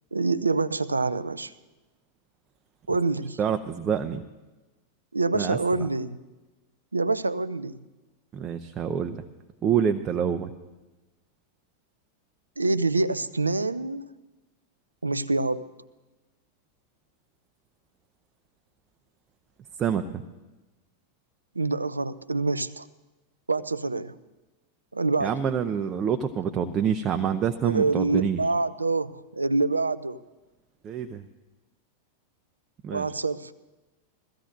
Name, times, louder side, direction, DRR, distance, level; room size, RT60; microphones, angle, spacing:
voice 1, 0.1-1.5 2.9-3.4 5.1-6.2 6.9-7.8 12.6-14.1 15.0-15.7 21.6-22.9 23.5-24.2 24.9-25.3 27.6-30.2 32.9-33.5, right 3 dB, 80° right, 16 dB, 0.5 m, -26 dB
voice 2, 3.4-4.2 5.3-5.6 8.3-9.2 9.6-10.5 19.8-20.2 25.2-28.4 30.8-31.2 32.8-33.1, right 8 dB, 25° right, 5 dB, 0.7 m, -26 dB
22.5 x 15.0 x 2.6 m, 1.1 s
figure-of-eight pair, 90°, 0 cm